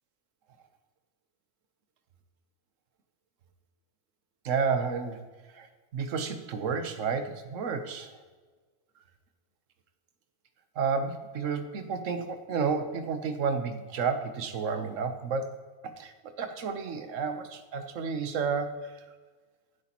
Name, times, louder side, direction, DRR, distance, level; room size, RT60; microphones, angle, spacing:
voice 1, 4.4-5.2 5.6-5.7 5.9-8.2 10.8-15.5 15.8-16.1 16.4-18.8, right 5 dB, 80° right, 9 dB, 1.2 m, -31 dB
15.5 x 8.0 x 3.0 m, 1.4 s
omnidirectional pair, 1.3 m